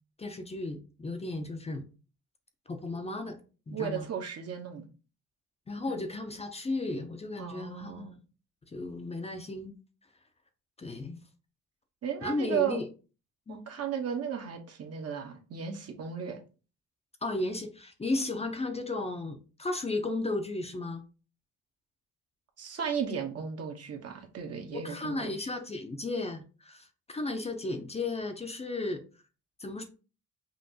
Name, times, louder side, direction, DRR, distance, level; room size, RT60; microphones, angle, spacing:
voice 1, 0.2-1.8 2.7-3.4 3.7-4.1 5.7-8.2 8.7-9.7 10.8-11.2 12.2-12.9 13.5-13.6 17.2-21.0 24.7-29.0 29.6-29.8, left 2 dB, 20° left, 0.6 m, -34 dB
voice 2, 3.7-4.9 7.4-8.2 12.0-12.8 13.5-16.4 22.6-25.3, right 7 dB, 55° right, 1.0 m, -35 dB
5.4 x 2.5 x 2.8 m
cardioid pair, 90°, 30 cm